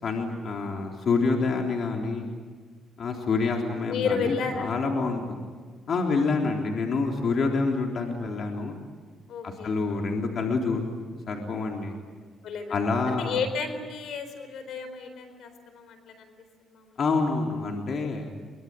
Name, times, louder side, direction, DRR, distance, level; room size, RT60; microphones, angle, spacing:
voice 1, 0.0-2.3 3.0-5.4 5.9-8.8 9.4-10.8 11.3-11.9 12.7-13.4 17.0-18.4, left 4 dB, 55° left, 1 dB, 3.7 m, -27 dB
voice 2, 3.9-4.7 7.2-7.3 9.3-9.7 12.4-12.8 13.1-16.3 16.7-17.0, left 5 dB, 75° left, 8 dB, 4.2 m, -32 dB
24.0 x 23.5 x 9.2 m, 1.5 s
cardioid pair, 90°, 0 cm